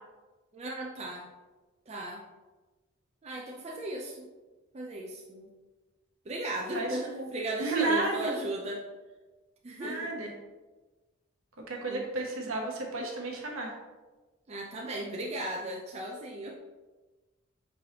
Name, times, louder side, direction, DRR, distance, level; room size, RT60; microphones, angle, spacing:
voice 1, 0.5-1.3 1.9-2.2 3.2-4.2 4.7-5.5 6.3-8.9 9.6-10.1 11.8-12.1 14.5-16.5, right 1 dB, 30° right, -1 dB, 0.4 m, -36 dB
voice 2, 6.7-7.3 7.6-8.3 9.8-10.3 11.7-13.7, right 2 dB, 70° right, 0 dB, 0.9 m, -32 dB
5.3 x 3.1 x 2.8 m, 1.2 s
head